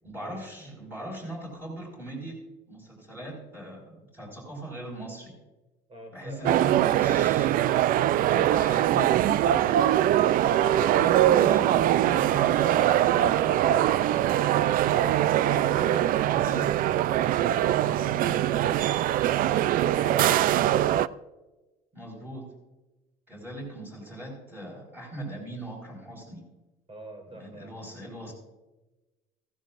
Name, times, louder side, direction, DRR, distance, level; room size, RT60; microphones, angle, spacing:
voice 1, 0.0-2.4 2.7-5.3 6.1-7.6 8.3-10.0 10.9-13.3 16.3-16.7 21.9-22.5 23.3-26.4 27.3-28.3, right 1 dB, 10° right, -3 dB, 5.3 m, -39 dB
voice 2, 5.9-6.7 10.6-11.3 15.6-16.8 26.9-27.7, right 1 dB, 35° right, 2 dB, 4.2 m, -42 dB
sound 1, 6.4-21.1, right 12 dB, 60° right, 0.4 m, -22 dB
16.0 x 15.5 x 2.5 m, 1.1 s
cardioid pair, 110°, 17 cm